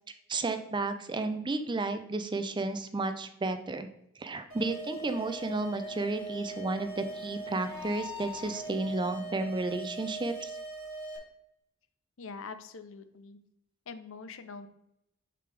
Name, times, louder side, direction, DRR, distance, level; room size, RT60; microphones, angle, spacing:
voice 1, 0.3-3.9 4.2-10.5, right 2 dB, 20° right, 9 dB, 0.5 m, -32 dB
sound 1, 4.5-11.2, right 1 dB, 70° right, 2.0 m, -41 dB
Bowed string instrument, 5.1-10.6, left 3 dB, 40° left, 1.6 m, -56 dB
voice 2, 12.2-13.4 13.9-14.7, left 4 dB, 65° left, 11 dB, 0.6 m, -44 dB
6.7 x 5.3 x 3.3 m, 0.78 s
head